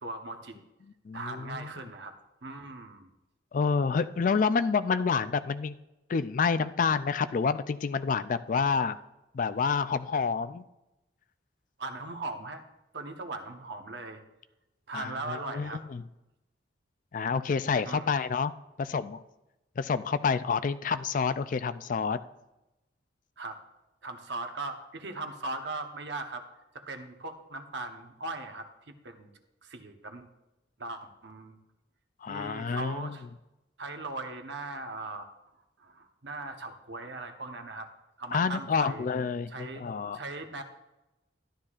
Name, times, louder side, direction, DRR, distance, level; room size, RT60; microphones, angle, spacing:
voice 1, 0.0-0.6 1.1-2.1 2.4-3.1 11.8-12.6 12.9-14.2 14.9-15.8 17.9-18.1 23.4-23.6 24.0-26.5 26.7-29.3 29.6-30.3 30.8-31.6 32.3-33.3 33.8-35.3 35.8-37.9 38.2-39.1 39.5-39.9 40.1-40.6, right 2 dB, 70° right, 5 dB, 1.0 m, -39 dB
voice 2, 1.1-1.7 3.5-5.7 6.1-9.0 9.3-10.6 14.9-16.0 17.1-18.5 18.8-19.2 19.8-22.2 32.2-33.1 38.3-40.2, left 5 dB, 45° left, 13 dB, 0.3 m, -28 dB
13.0 x 11.5 x 2.4 m, 0.95 s
head